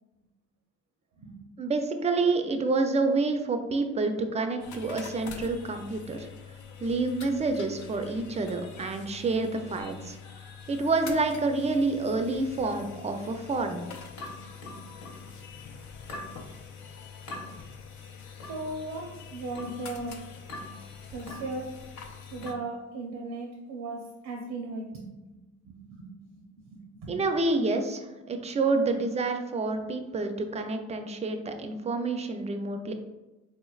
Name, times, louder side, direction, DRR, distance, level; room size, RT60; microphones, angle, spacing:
voice 1, 1.6-6.3 6.8-10.2 10.7-13.8 27.1-32.9, right 3 dB, 20° right, 6 dB, 0.4 m, -28 dB
sound 1, 4.6-22.5, left 6 dB, 70° left, 0.5 m, -45 dB
sound 2, 14.2-15.3 16.1-16.4 17.3-17.5 18.4-18.7 19.5-19.8 20.5-20.8 21.3-21.5 22.4-22.7, left 1 dB, 90° left, 1.1 m, -41 dB
voice 2, 18.5-20.2 21.1-21.7 22.3-25.3 25.6-26.1 26.4-27.2, right 2 dB, 80° right, -1 dB, 0.6 m, -37 dB
3.9 x 3.1 x 2.3 m, 1.1 s
cardioid pair, 90°, 30 cm